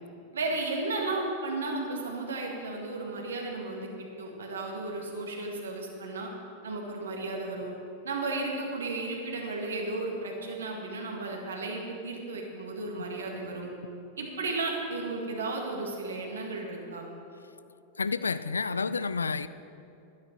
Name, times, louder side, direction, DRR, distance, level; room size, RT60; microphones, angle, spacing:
voice 1, 0.3-6.3 6.6-7.7 8.0-13.7 14.2-17.1, right 3 dB, 70° right, 0 dB, 1.9 m, -34 dB
voice 2, 18.0-19.5, left 4 dB, 75° left, 15 dB, 0.3 m, -29 dB
12.0 x 10.0 x 5.3 m, 2.8 s
figure-of-eight pair, 90°, 0 cm